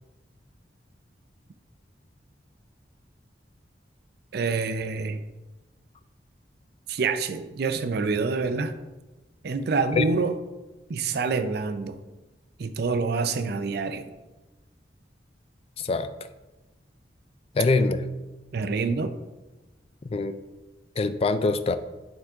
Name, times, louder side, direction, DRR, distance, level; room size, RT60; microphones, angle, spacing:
voice 1, 4.3-5.2 6.9-8.7 9.4-10.3 10.9-12.0 12.6-14.1 18.5-19.1, right 4 dB, 65° right, 9 dB, 0.5 m, -26 dB
voice 2, 15.8-16.1 17.5-18.0 20.0-20.3 21.0-21.8, left 3 dB, 35° left, 11 dB, 0.4 m, -23 dB
8.9 x 3.7 x 3.5 m, 1.1 s
head